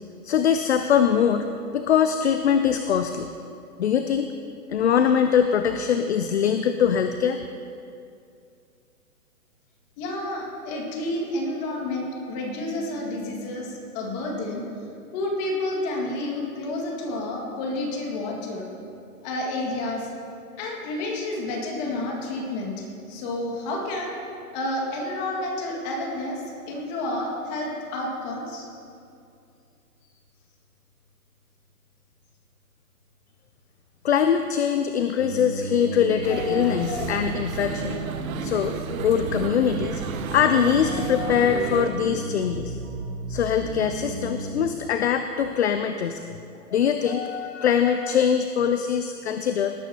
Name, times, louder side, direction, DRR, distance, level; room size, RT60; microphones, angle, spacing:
voice 1, 0.2-1.5 1.7-3.3 3.8-4.3 4.7-7.4 34.0-38.0 38.4-38.8 39.0-40.0 40.3-42.8 43.3-46.2 46.7-49.7, left 8 dB, 45° left, 8 dB, 0.5 m, -22 dB
voice 2, 10.0-14.7 15.1-18.7 19.2-20.1 20.6-24.2 24.5-28.7, left 1 dB, 25° left, -1 dB, 2.0 m, -30 dB
sound 1, 35.2-44.7, right 2 dB, 80° right, 3.4 m, -34 dB
sound 2, 36.2-41.8, right 7 dB, 60° right, 0.8 m, -32 dB
18.5 x 11.0 x 2.9 m, 2.5 s
hypercardioid pair, 155°, 47 cm